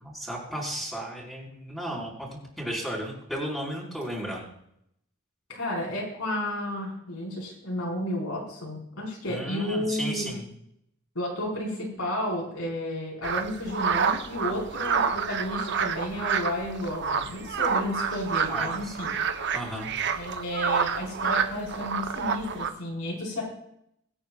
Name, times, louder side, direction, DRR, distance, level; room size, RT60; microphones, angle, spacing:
voice 1, 0.0-2.3 2.6-4.5 9.3-10.5 18.5-19.0 19.5-19.9, equal, ahead, -5 dB, 4.6 m, -34 dB
voice 2, 5.5-10.3 11.1-19.1 20.1-23.5, left 1 dB, 75° left, -3 dB, 4.9 m, -32 dB
sound 1, 13.2-22.7, right 6 dB, 55° right, 0.9 m, -28 dB
24.5 x 9.3 x 2.4 m, 0.74 s
head